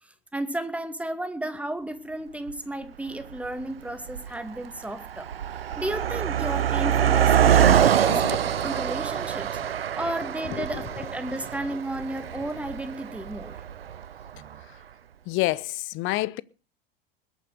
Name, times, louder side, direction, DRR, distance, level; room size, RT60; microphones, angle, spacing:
voice 1, 0.3-5.3 5.8-9.5 9.9-13.6, right 1 dB, 5° right, 2.3 m, -33 dB
Car passing by, 2.5-2.6 3.4-3.6 3.9-14.3, right 9 dB, 80° right, 0.7 m, -24 dB
voice 2, 8.1-8.5 10.5-10.8 15.3-16.4, left 19 dB, 45° left, 0.9 m, -29 dB
sound 1, 11.3-11.8 12.1-14.7, right 8 dB, 60° right, 3.0 m, -55 dB
20.5 x 9.4 x 6.5 m
figure-of-eight pair, 85°, 29 cm